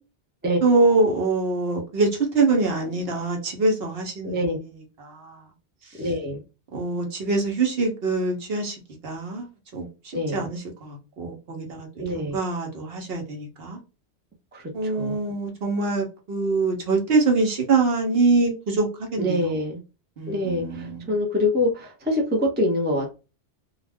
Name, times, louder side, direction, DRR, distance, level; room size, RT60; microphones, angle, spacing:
voice 1, 0.6-4.4 5.0-5.4 6.7-8.8 9.0-9.5 9.7-9.9 10.3-13.8 14.7-19.6 20.2-21.0, right 3 dB, 65° right, 1.0 m, -24 dB
voice 2, 4.2-4.6 6.0-6.4 10.1-10.5 12.0-12.4 14.5-15.1 19.2-19.8 20.3-23.1, left 1 dB, 15° right, 0.4 m, -25 dB
2.4 x 2.1 x 3.3 m
omnidirectional pair, 1.1 m